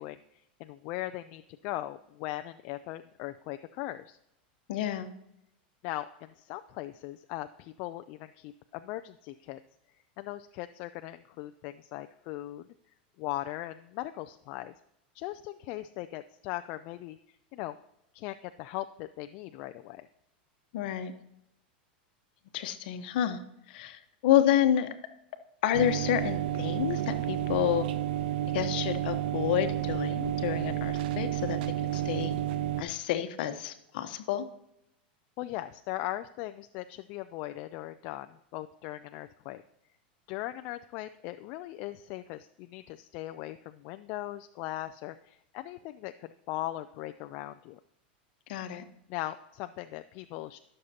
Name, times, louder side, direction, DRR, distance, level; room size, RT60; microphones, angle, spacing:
voice 1, 0.0-4.2 5.8-9.6 10.2-12.7 13.2-14.7 15.1-17.8 18.1-20.1 35.4-39.6 40.3-47.8 49.1-50.6, left 15 dB, 50° left, 9 dB, 0.3 m, -39 dB
voice 2, 4.7-5.1 20.7-21.1 22.5-23.4 23.7-24.9 25.6-27.9 28.5-32.3 32.8-34.4 48.5-48.8, left 11 dB, 65° left, 9 dB, 1.0 m, -29 dB
sound 1, 25.7-32.8, right 13 dB, 70° right, 0.6 m, -31 dB
18.5 x 6.5 x 2.8 m, 0.82 s
supercardioid pair, 120°, 5 cm